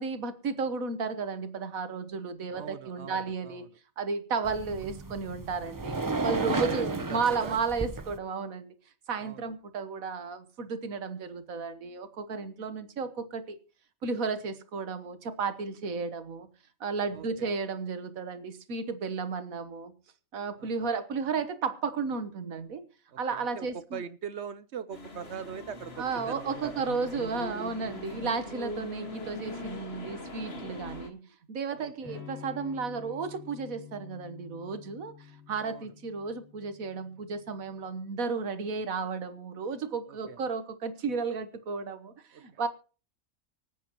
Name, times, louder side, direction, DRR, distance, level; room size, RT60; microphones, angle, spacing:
voice 1, 0.0-3.7 4.0-8.7 9.1-13.6 14.0-16.5 16.8-19.9 20.3-22.8 23.2-24.0 26.0-42.7, right 5 dB, 80° right, 1.7 m, -33 dB
voice 2, 2.5-3.6 6.2-7.6 9.2-9.4 17.1-17.5 20.6-20.9 23.3-23.7 23.9-26.8 28.7-29.2 31.8-32.2 35.6-35.9 40.1-40.4 42.3-42.6, right 7 dB, 60° right, 0.9 m, -41 dB
sound 1, 4.4-8.2, right 3 dB, 20° right, 0.5 m, -33 dB
sound 2, 24.9-31.1, left 2 dB, 45° left, 2.0 m, -41 dB
Electric guitar / Strum, 32.0-37.8, left 7 dB, 15° left, 2.1 m, -49 dB
25.0 x 8.3 x 3.0 m
omnidirectional pair, 1.4 m